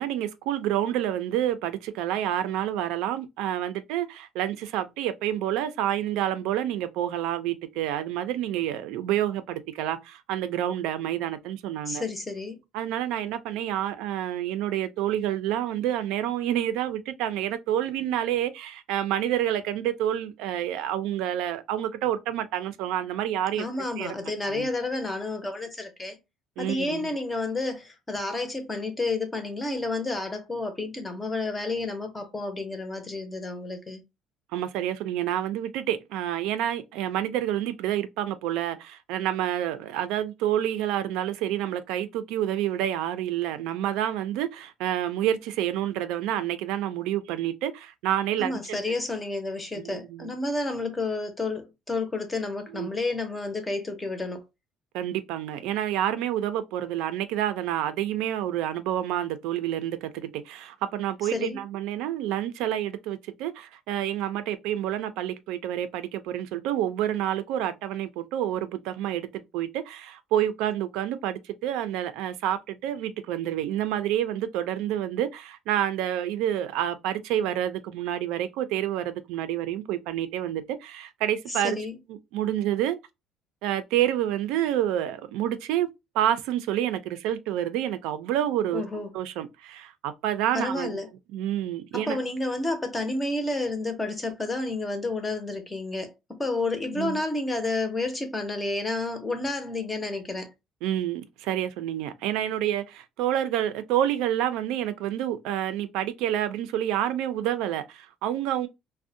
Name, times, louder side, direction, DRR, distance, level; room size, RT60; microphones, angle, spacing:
voice 1, 0.0-12.0 12.7-23.7 24.0-24.1 24.4-24.7 26.6-27.1 34.5-48.8 49.8-50.3 52.7-52.9 54.9-81.8 82.1-83.0 83.6-85.9 86.1-88.8 89.1-91.0 91.3-92.2 96.9-97.2 100.8-108.7, right 11 dB, 90° right, 0.3 m, -28 dB
voice 2, 11.9-12.6 23.6-26.2 26.6-34.0 48.4-54.4 61.3-61.6 81.5-81.9 88.7-89.1 90.5-91.1 91.9-100.5, left 2 dB, 15° left, 0.5 m, -30 dB
2.5 x 2.0 x 2.6 m
cardioid pair, 155°, 0 cm